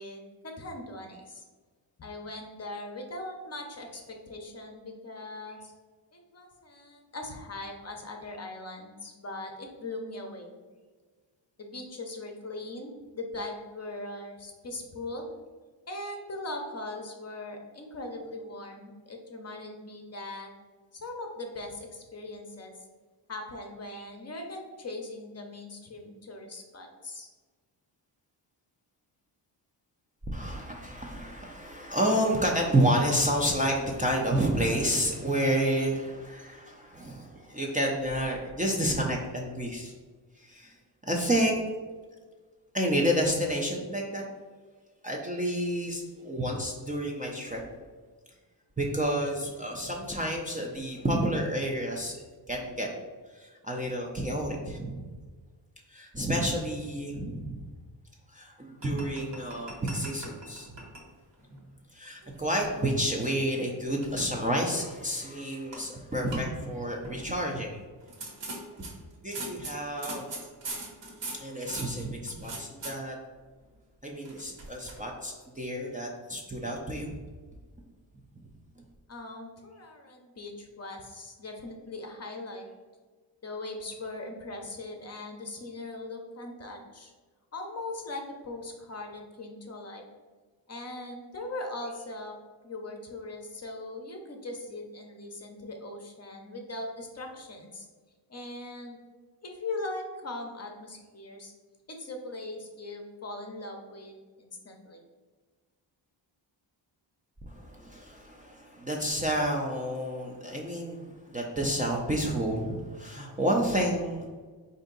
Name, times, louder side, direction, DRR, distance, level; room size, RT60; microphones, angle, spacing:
voice 1, 0.0-1.4 2.0-5.7 6.1-10.6 11.6-15.3 15.9-20.5 20.9-22.7 23.3-27.3 79.1-82.6 83.4-87.1 87.5-90.0 90.7-92.4 92.6-97.9 98.3-99.0 99.4-101.5 101.9-105.0, left 2 dB, 35° left, 2 dB, 0.6 m, -40 dB
voice 2, 30.3-39.9 40.4-40.7 41.0-41.6 42.7-44.3 45.0-47.6 48.8-52.9 53.3-55.0 55.9-57.6 58.3-60.8 61.9-67.8 69.2-70.3 71.4-73.2 74.0-77.2 107.5-114.3, right 1 dB, 20° right, -1 dB, 0.4 m, -30 dB
sound 1, 58.8-61.1 61.4-61.6 62.2-63.7 64.0-64.2 64.8-65.2 65.7-65.8 66.1-66.4 67.0-67.4 68.0-72.9 74.2-75.0, right 2 dB, 65° right, 1.2 m, -41 dB
4.4 x 2.7 x 3.8 m, 1.4 s
wide cardioid pair, 125°, 46 cm